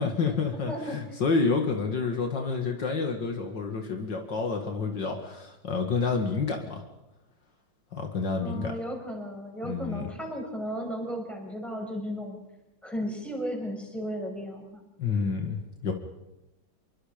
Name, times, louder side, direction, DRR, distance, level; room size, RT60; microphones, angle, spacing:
voice 1, 0.0-6.8 7.9-8.7 9.6-10.1 15.0-15.9, left 4 dB, 65° left, 3 dB, 2.7 m, -29 dB
voice 2, 8.4-12.4 12.8-14.8, equal, ahead, 0 dB, 6.2 m, -35 dB
27.5 x 23.0 x 5.2 m, 0.96 s
omnidirectional pair, 2.1 m